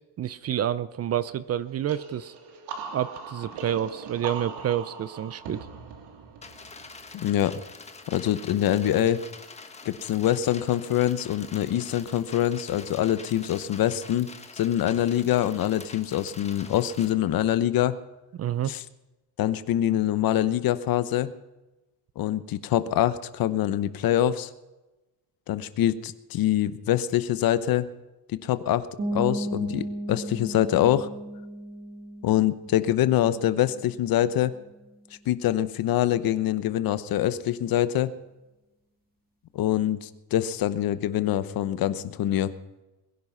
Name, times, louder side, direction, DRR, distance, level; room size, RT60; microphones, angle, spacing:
voice 1, 0.2-2.3 2.9-5.7 18.3-18.7, right 10 dB, 35° right, 17 dB, 0.5 m, -28 dB
sound 1, 1.9-7.4, right 5 dB, 75° right, 3.1 m, -40 dB
sound 2, 6.4-17.1, left 4 dB, 15° left, 1.3 m, -45 dB
voice 2, 7.1-7.6 8.1-9.2 9.8-18.0 18.7-18.8 19.4-21.3 22.2-24.5 25.5-27.9 28.4-28.9 29.1-31.1 32.2-34.5 35.3-38.1 39.5-42.5, left 12 dB, 55° left, 14 dB, 1.0 m, -25 dB
sound 3, 29.0-34.6, right 1 dB, 20° right, 2.0 m, -35 dB
21.5 x 11.0 x 5.6 m, 1.0 s
cardioid pair, 165°, 41 cm